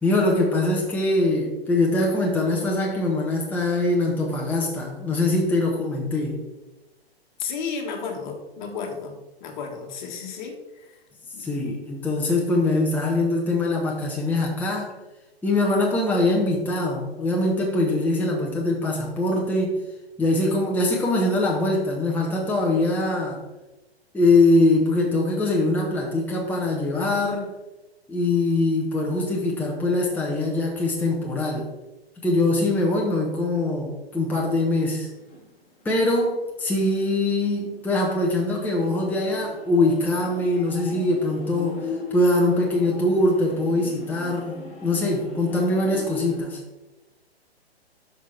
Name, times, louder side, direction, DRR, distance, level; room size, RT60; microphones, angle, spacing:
voice 1, 0.0-6.4 11.4-14.9 15.4-19.8 20.2-23.4 24.1-27.5 28.1-31.7 32.2-35.1 35.8-46.6, left 2 dB, 5° left, -2 dB, 0.9 m, -23 dB
voice 2, 7.4-9.1 9.4-11.0 11.3-11.5, left 5 dB, 45° left, 3 dB, 1.5 m, -33 dB
sound 1, 35.0-36.3 36.6-36.7 37.4-46.4, left 4 dB, 20° left, 2.1 m, -39 dB
8.5 x 5.6 x 3.3 m, 1.0 s
figure-of-eight pair, 115°, 32 cm